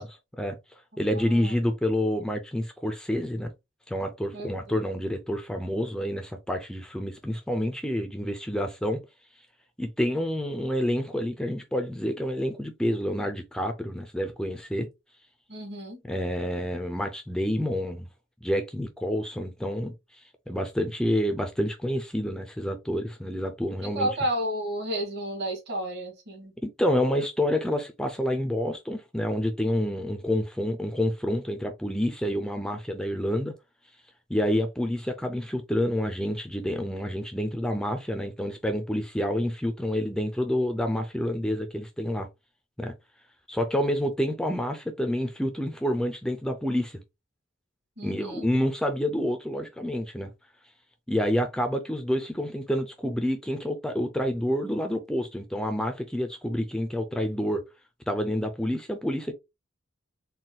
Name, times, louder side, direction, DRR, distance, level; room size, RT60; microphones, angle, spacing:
voice 1, 0.0-3.5 3.9-9.0 9.8-14.9 16.0-18.1 18.4-24.1 26.6-33.5 34.3-42.3 42.8-42.9 43.5-47.0 48.0-50.3 51.1-57.6 58.1-59.3, equal, 5° left, 0.4 m, -28 dB
voice 2, 1.1-1.5 4.3-4.8 15.5-16.0 23.8-26.5 48.0-48.5, right 1 dB, 55° right, 2.0 m, -32 dB
4.1 x 2.3 x 3.7 m
head